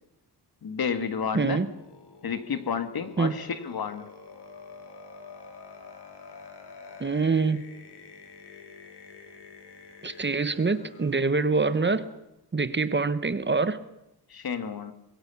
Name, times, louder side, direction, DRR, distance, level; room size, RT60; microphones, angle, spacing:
voice 1, 0.6-1.6 2.2-4.1 14.3-14.9, left 6 dB, 65° left, 1.9 m, -31 dB
voice 2, 1.3-1.7 3.2-3.3 7.0-7.6 10.0-12.0 12.5-13.8, right 4 dB, 30° right, 1.0 m, -25 dB
sound 1, 1.6-12.2, left 4 dB, 85° left, 4.1 m, -48 dB
26.0 x 21.5 x 7.0 m
wide cardioid pair, 175°, 40 cm